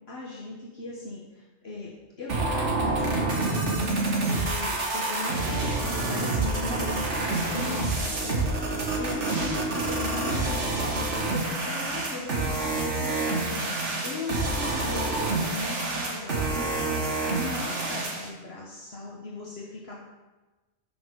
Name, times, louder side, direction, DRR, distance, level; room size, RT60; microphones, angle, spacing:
voice 1, 0.1-19.9, left 3 dB, 60° left, -4 dB, 1.4 m, -38 dB
sound 1, 2.3-18.3, right 2 dB, 80° right, 1.8 m, -28 dB
11.5 x 6.3 x 3.7 m, 1.2 s
omnidirectional pair, 1.2 m